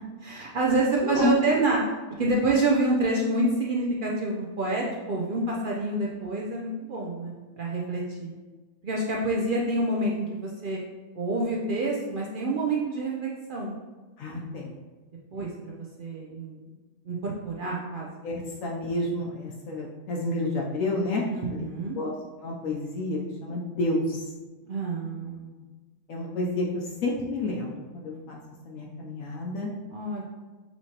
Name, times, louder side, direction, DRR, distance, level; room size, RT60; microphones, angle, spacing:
voice 1, 0.2-1.8 2.2-8.3 8.8-10.8 11.2-13.8 14.3-14.4 15.3-16.6 17.1-18.1 21.3-22.0 24.7-25.6 29.9-30.2, right 2 dB, 70° right, -2 dB, 0.5 m, -27 dB
voice 2, 1.0-1.6 14.2-14.7 15.4-15.5 18.2-21.2 21.5-21.7 21.9-22.1 22.4-24.2 26.1-28.4 28.6-29.7, left 2 dB, 70° left, -2 dB, 1.0 m, -30 dB
5.6 x 3.0 x 2.8 m, 1.3 s
omnidirectional pair, 1.5 m